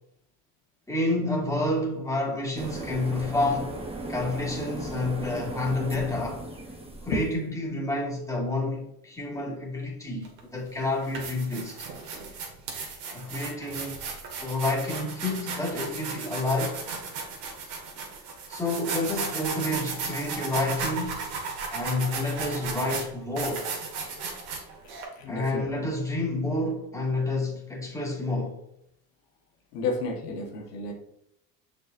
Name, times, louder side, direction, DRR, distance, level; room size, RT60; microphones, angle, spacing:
voice 1, 0.9-3.7 4.1-6.5 7.0-11.9 13.1-14.0 14.4-16.9 18.5-21.3 21.7-23.7 25.3-28.6, left 2 dB, 5° left, 2.2 m, -29 dB
sound 1, 2.6-7.3, right 2 dB, 10° right, 1.3 m, -36 dB
sound 2, 10.2-10.4 10.9-25.0, right 4 dB, 60° right, 2.0 m, -35 dB
voice 2, 25.2-25.9 29.7-30.9, left 2 dB, 85° left, 1.5 m, -31 dB
6.6 x 5.4 x 2.6 m
supercardioid pair, 85°, 46 cm